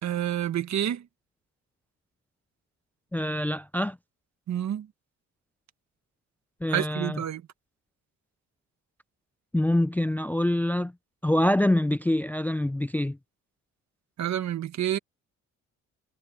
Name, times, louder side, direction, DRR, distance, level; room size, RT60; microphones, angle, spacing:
voice 1, 0.0-1.0 4.5-4.9 6.7-7.4 14.2-15.0, right 11 dB, 65° right, 1.7 m, -28 dB
voice 2, 3.1-4.0 6.6-7.2 9.5-10.9 11.2-13.2, left 1 dB, 5° left, 0.4 m, -25 dB
cardioid pair, 90°, 30 cm